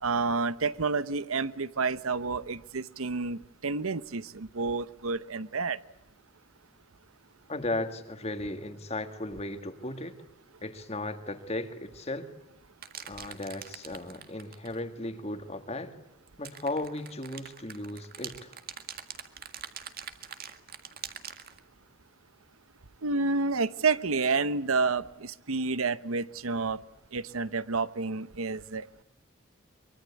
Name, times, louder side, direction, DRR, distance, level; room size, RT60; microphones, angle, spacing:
voice 1, 0.0-5.8 23.0-26.8 27.1-29.0, right 4 dB, 80° right, 16 dB, 0.9 m, -29 dB
voice 2, 7.5-10.2 10.6-12.3 13.1-16.0 16.4-18.5, left 2 dB, 30° left, 8 dB, 1.9 m, -36 dB
sound 1, 12.8-14.8 16.3-21.6, right 9 dB, 45° right, 1.9 m, -43 dB
24.0 x 23.0 x 8.3 m, 0.89 s
head